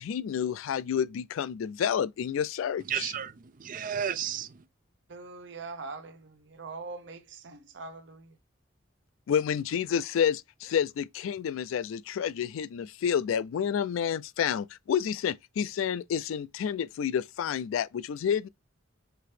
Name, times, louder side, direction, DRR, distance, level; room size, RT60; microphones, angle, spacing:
voice 1, 0.0-3.1 9.3-18.5, left 8 dB, 80° left, 0.3 m, -29 dB
voice 2, 2.9-4.6, right 9 dB, 40° right, 0.4 m, -33 dB
voice 3, 5.1-8.3, right 3 dB, 60° right, 0.8 m, -42 dB
5.8 x 2.8 x 3.2 m
head